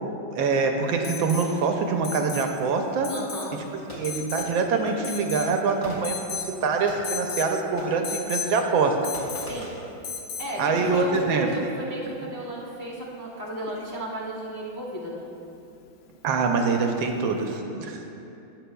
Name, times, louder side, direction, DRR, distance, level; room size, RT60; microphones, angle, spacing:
voice 1, 0.3-3.1 3.9-9.0 10.6-11.5 16.2-18.2, right 4 dB, 75° right, 4 dB, 1.4 m, -25 dB
Alarm, 1.0-1.5 2.0-2.5 3.0-3.5 4.0-4.5 5.0-5.6 6.0-6.5 7.0-7.5 8.0-8.5 9.0-9.5 10.0-10.5 12.3-12.4, left 6 dB, 70° left, 0.9 m, -34 dB
voice 2, 3.1-3.6 4.8-5.1 9.4-9.8 10.4-15.2, right 1 dB, 25° left, -4 dB, 0.4 m, -34 dB
Fireworks, 3.9-4.8 5.8-7.2 7.8-8.2 8.5-9.9 10.7-11.2, equal, 45° left, 2.6 m, -40 dB
18.0 x 6.4 x 2.3 m, 2.8 s
omnidirectional pair, 2.2 m